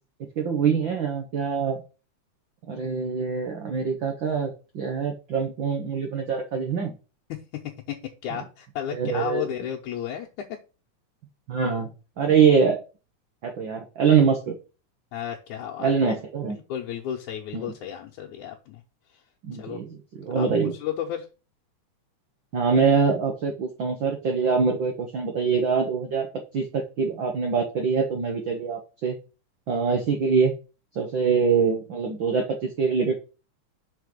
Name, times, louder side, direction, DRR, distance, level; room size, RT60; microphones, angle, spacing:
voice 1, 0.4-1.8 2.7-7.0 8.9-9.4 11.5-11.9 12.2-12.8 13.4-14.6 15.8-16.6 17.5-17.7 19.4-19.9 20.2-20.7 22.5-26.3 26.5-29.2 29.7-30.5 30.9-33.1, right 6 dB, 55° right, 2 dB, 1.5 m, -24 dB
voice 2, 7.3-10.6 15.1-16.1 16.5-18.8 19.6-19.8 20.4-21.3, left 10 dB, 80° left, 0 dB, 2.4 m, -33 dB
5.9 x 4.5 x 6.4 m, 0.31 s
omnidirectional pair, 3.4 m